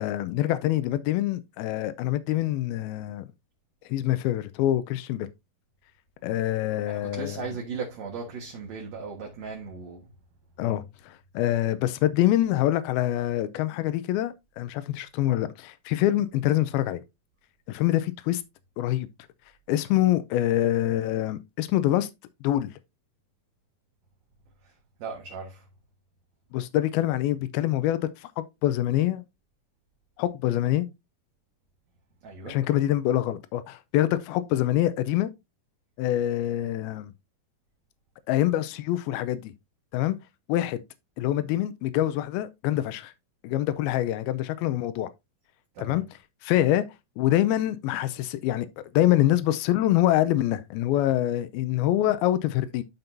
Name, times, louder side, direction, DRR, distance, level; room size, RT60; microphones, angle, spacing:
voice 1, 0.0-3.3 3.9-5.3 6.2-7.6 10.6-17.0 17.7-18.4 18.8-19.1 19.7-22.1 22.4-22.7 26.5-29.2 30.2-30.9 32.5-35.3 36.0-37.1 38.3-39.5 39.9-40.2 40.5-40.8 41.2-43.1 43.4-45.1 45.8-46.0 46.4-46.9 47.2-52.8, left 13 dB, 90° left, 2.5 m, -25 dB
voice 2, 6.9-10.0 10.6-10.8 25.0-25.6 32.2-32.6 45.8-46.0, right 4 dB, 55° right, 2.4 m, -37 dB
11.5 x 5.3 x 2.7 m
omnidirectional pair, 4.3 m